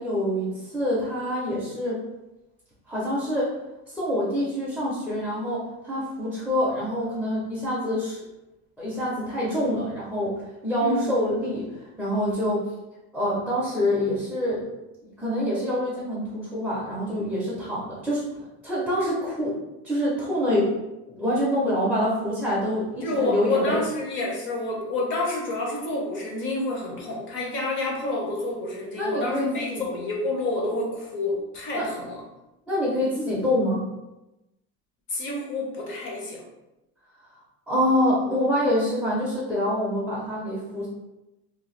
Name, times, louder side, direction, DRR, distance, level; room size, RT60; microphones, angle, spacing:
voice 1, 0.0-2.0 2.9-3.5 3.9-8.2 8.8-10.4 10.6-11.7 12.0-12.6 13.1-14.6 15.2-18.2 18.6-19.6 19.8-20.7 21.1-23.8 29.0-29.8 31.7-31.9 32.7-33.8 37.7-40.9, left 1 dB, ahead, -8 dB, 0.5 m, -26 dB
voice 2, 10.8-11.1 23.0-32.2 35.1-36.4, left 2 dB, 35° left, -1 dB, 0.7 m, -28 dB
2.7 x 2.1 x 3.1 m, 0.97 s
cardioid pair, 170°, 33 cm